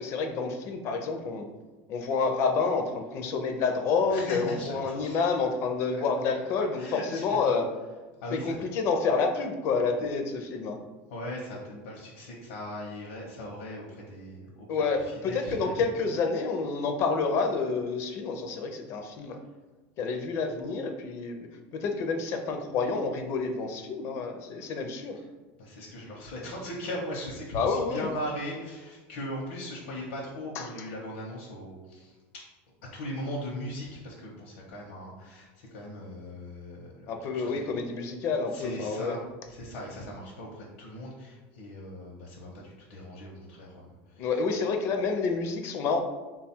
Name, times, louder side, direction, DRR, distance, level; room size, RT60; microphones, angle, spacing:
voice 1, 0.0-1.5 1.9-7.7 8.3-10.8 14.7-19.4 20.0-21.5 21.7-25.2 27.5-28.1 30.6-30.7 37.1-39.2 44.2-46.0, left 4 dB, 45° left, 5 dB, 0.5 m, -29 dB
voice 2, 4.1-5.2 5.9-6.0 6.7-7.4 8.2-8.6 9.9-10.0 11.1-15.8 24.6-24.7 25.1-25.2 25.6-32.1 32.9-37.7 38.5-39.2 39.5-44.3, equal, 80° left, -3 dB, 0.7 m, -39 dB
3.6 x 2.3 x 4.3 m, 1.2 s
supercardioid pair, 145°, 6 cm